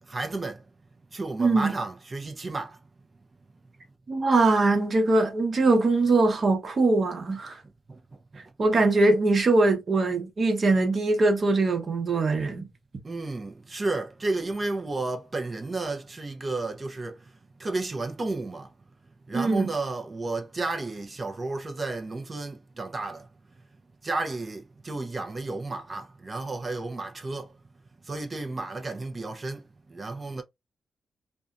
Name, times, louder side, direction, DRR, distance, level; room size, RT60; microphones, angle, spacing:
voice 1, 0.0-0.6 1.1-2.8 7.9-8.0 8.3-8.4 13.0-17.3 17.6-18.7 19.3-23.3 24.0-27.6 28.0-30.4, right 3 dB, 35° right, 0.6 m, -32 dB
voice 2, 1.4-1.7 4.1-7.6 8.6-12.6 19.3-19.7, right 2 dB, 50° right, 1.0 m, -22 dB
2.6 x 2.2 x 2.4 m
cardioid pair, 80°, 0 cm